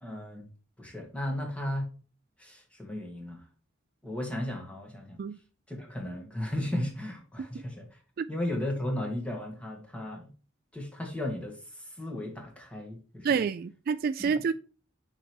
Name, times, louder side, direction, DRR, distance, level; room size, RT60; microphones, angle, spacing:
voice 1, 0.0-0.5 0.8-1.9 2.4-3.4 4.0-5.2 5.7-7.9 8.3-10.3 10.7-11.6 12.0-13.4 14.2-14.4, left 1 dB, 5° left, 1.8 m, -35 dB
voice 2, 13.2-14.5, right 6 dB, 50° right, 0.3 m, -28 dB
6.4 x 4.7 x 4.7 m
head